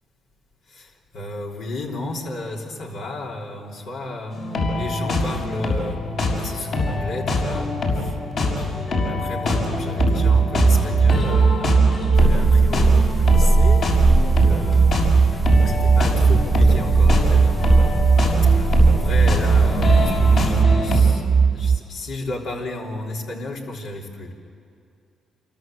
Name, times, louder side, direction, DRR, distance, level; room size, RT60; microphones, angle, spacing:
voice 1, 0.7-4.4 4.7-6.1 6.4-11.8 12.1-15.0 15.6-18.1 18.5-24.3, left 2 dB, 80° left, -2 dB, 3.5 m, -33 dB
sound 1, 4.3-21.0, left 2 dB, 65° left, 6.5 m, -25 dB
sound 2, 10.0-21.8, right 6 dB, 35° right, 0.8 m, -18 dB
sound 3, 12.1-20.6, equal, 10° left, 0.7 m, -23 dB
28.0 x 23.5 x 7.8 m, 2.5 s
cardioid pair, 90°, 0 cm